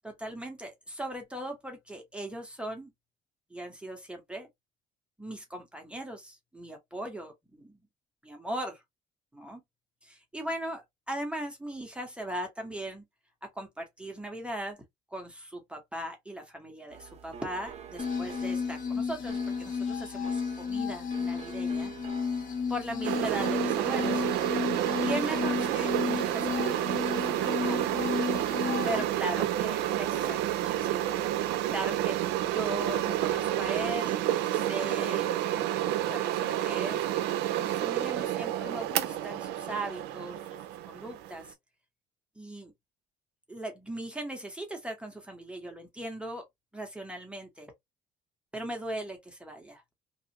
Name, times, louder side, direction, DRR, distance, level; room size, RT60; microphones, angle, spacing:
voice 1, 0.0-2.9 3.5-4.5 5.2-7.8 8.2-8.8 9.3-9.6 10.0-13.0 13.5-14.8 15.1-21.9 22.7-24.2 25.0-27.8 28.9-31.1 31.7-32.2 32.5-35.3 36.1-37.1 37.5-40.4 40.9-41.4 42.4-42.7 43.5-46.4 46.7-47.7 48.5-49.8, right 1 dB, 5° right, 0.8 m, -38 dB
sound 1, 16.9-33.9, right 7 dB, 40° right, 0.7 m, -48 dB
sound 2, 18.0-29.0, left 6 dB, 50° left, 0.9 m, -33 dB
sound 3, 23.0-41.5, right 13 dB, 90° right, 0.4 m, -29 dB
2.6 x 2.4 x 2.8 m
cardioid pair, 110°, 17 cm